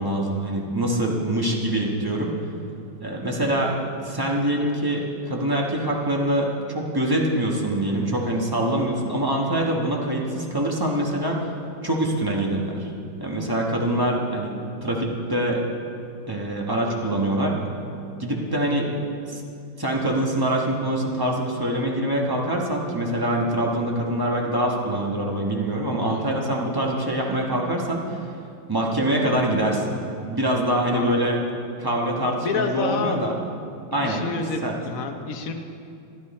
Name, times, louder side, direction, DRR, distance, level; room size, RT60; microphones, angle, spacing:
voice 1, 0.0-2.3 3.0-3.8 4.0-11.5 11.8-12.9 13.2-14.5 14.8-15.6 16.3-17.5 18.2-18.9 19.3-19.4 19.8-28.3 28.7-30.0 30.3-31.4 31.8-33.3 33.9-34.2 34.6-34.7, right 1 dB, 15° right, -1 dB, 0.8 m, -24 dB
voice 2, 26.1-26.4 30.9-31.3 32.4-33.2 33.9-35.5, left 4 dB, 60° left, 5 dB, 0.9 m, -29 dB
13.0 x 11.0 x 4.2 m, 2.5 s
omnidirectional pair, 2.2 m